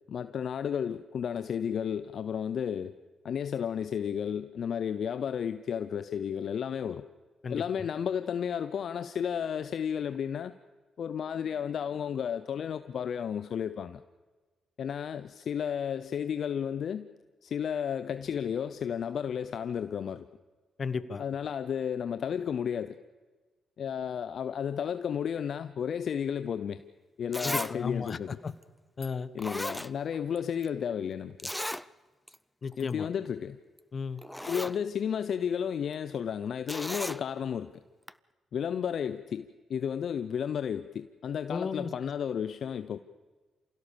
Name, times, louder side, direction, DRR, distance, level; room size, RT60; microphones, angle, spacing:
voice 1, 0.1-2.9 3.2-7.0 7.5-10.5 11.0-14.0 14.8-17.1 17.4-20.3 21.2-23.0 23.8-26.8 27.2-28.4 29.3-31.5 32.8-33.6 34.4-37.7 38.5-43.0, left 8 dB, 65° left, 12 dB, 0.6 m, -33 dB
voice 2, 20.8-21.2 27.4-28.5 29.0-29.3 32.6-33.1 33.9-34.2 41.5-41.9, left 5 dB, 50° left, 15 dB, 1.2 m, -34 dB
Zipper (clothing), 26.8-26.9 27.3-27.7 28.1-28.2 29.0-29.1 29.4-30.4 30.6-30.7 31.4-31.8 32.3-32.4 32.7-32.9 33.8-33.9 34.2-34.8 36.7-37.2 38.1-38.2, left 1 dB, 5° left, 0.6 m, -35 dB
27.0 x 16.5 x 6.9 m, 1.3 s
supercardioid pair, 55°, 0 cm